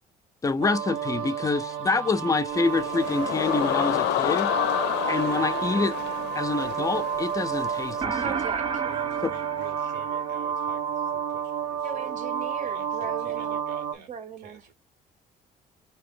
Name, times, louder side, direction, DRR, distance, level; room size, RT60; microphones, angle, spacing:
voice 1, 0.4-4.5 5.1-5.9 6.3-8.3 9.2-9.3, left 4 dB, 20° left, 0.4 m, -26 dB
sound 1, 0.6-13.9, right 8 dB, 75° right, 1.2 m, -31 dB
sound 2, 2.5-8.0, left 14 dB, 85° left, 0.4 m, -29 dB
sound 3, 8.0-10.6, right 5 dB, 30° right, 0.5 m, -32 dB
voice 2, 8.2-8.8 11.8-13.6 14.1-14.7, right 6 dB, 45° right, 0.8 m, -38 dB
voice 3, 8.8-12.2 12.6-14.7, right 7 dB, 90° right, 1.6 m, -49 dB
4.3 x 2.8 x 3.7 m
cardioid pair, 110°, 17 cm